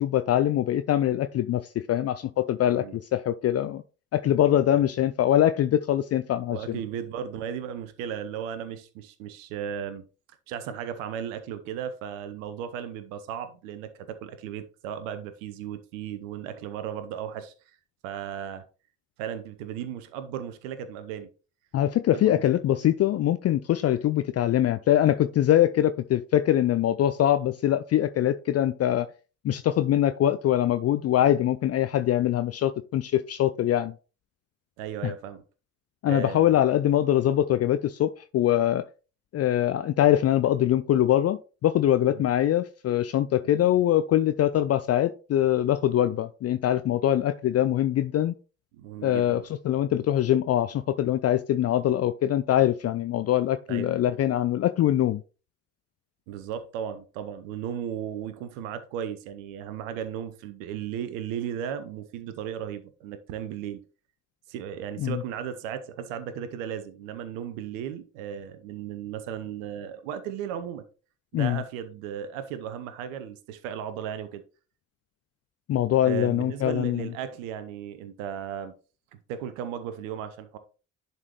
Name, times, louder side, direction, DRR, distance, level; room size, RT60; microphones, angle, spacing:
voice 1, 0.0-3.8 4.1-6.8 21.7-29.1 29.4-33.9 35.0-35.1 36.0-38.8 39.3-48.3 49.0-55.2 65.0-65.2 71.3-71.6 75.7-77.1, left 12 dB, 40° left, 0.5 m, -23 dB
voice 2, 2.6-3.0 4.7-4.8 6.5-10.0 10.5-17.5 18.0-18.6 19.2-21.3 22.1-22.4 34.8-35.4 36.1-36.6 42.1-42.3 43.4-43.7 48.7-49.4 53.7-54.0 56.3-63.8 64.5-70.8 71.3-74.4 76.0-78.7 79.3-80.6, right 9 dB, 75° right, 0.8 m, -35 dB
10.5 x 4.1 x 3.2 m
figure-of-eight pair, 40°, 40 cm